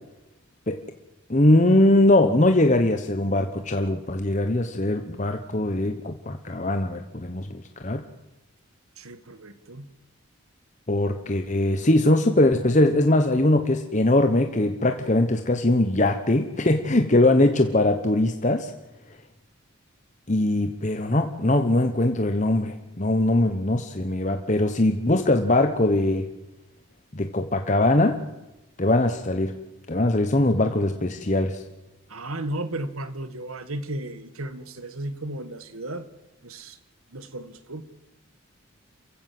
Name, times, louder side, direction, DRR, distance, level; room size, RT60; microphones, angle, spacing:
voice 1, 1.3-8.0 10.9-18.7 20.3-26.3 27.1-28.2 28.8-29.5 29.9-31.6, left 1 dB, 35° left, 6 dB, 1.1 m, -21 dB
voice 2, 9.0-9.9 32.1-36.1 36.4-36.8 37.1-37.8, right 1 dB, 90° right, 12 dB, 1.8 m, -34 dB
27.5 x 15.5 x 7.8 m, 1.0 s
head